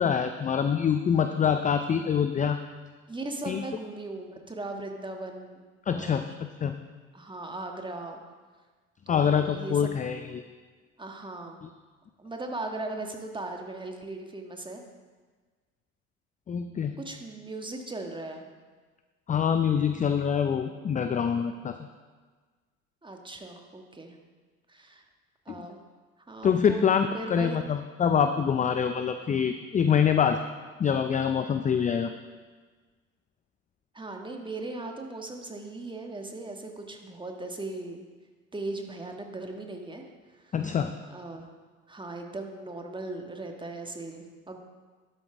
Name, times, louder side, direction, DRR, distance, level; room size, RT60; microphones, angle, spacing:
voice 1, 0.0-2.6 3.5-3.6 5.9-6.2 6.6-6.7 9.1-10.4 16.5-16.9 19.3-21.8 25.5-25.7 26.4-30.4 30.8-32.1 40.5-40.9, left 7 dB, 20° left, 8 dB, 0.5 m, -25 dB
voice 2, 3.1-6.3 7.1-8.2 9.1-10.0 11.0-11.6 12.2-14.8 17.0-18.5 23.0-24.1 24.7-25.0 25.4-25.8 26.3-26.9 27.1-27.6 33.9-38.0 38.5-40.0 40.3-40.5 41.1-41.5 41.9-44.6, right 2 dB, 10° right, 3 dB, 1.5 m, -38 dB
12.0 x 8.9 x 3.4 m, 1.4 s
hypercardioid pair, 65°, 40 cm